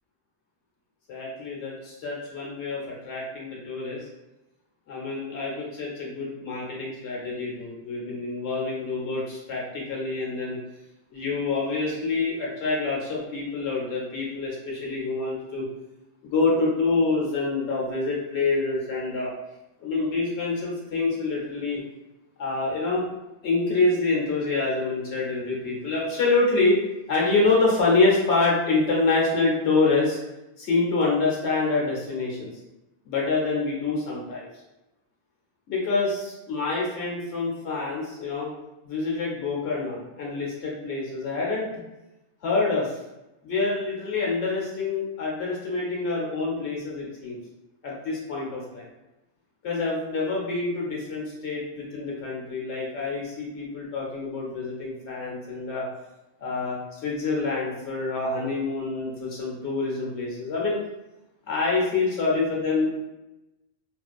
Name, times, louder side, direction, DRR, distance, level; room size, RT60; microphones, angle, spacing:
voice 1, 1.1-4.0 4.9-10.6 11.1-15.6 16.2-19.3 19.8-21.8 22.4-23.1 23.4-26.8 27.1-30.2 30.6-32.5 33.0-34.5 35.7-38.5 38.8-41.7 42.4-43.0 43.4-47.4 47.8-48.9 49.6-55.8 56.4-60.8 61.5-63.0, left 3 dB, 75° left, -3 dB, 1.0 m, -26 dB
2.5 x 2.3 x 2.3 m, 0.98 s
omnidirectional pair, 1.1 m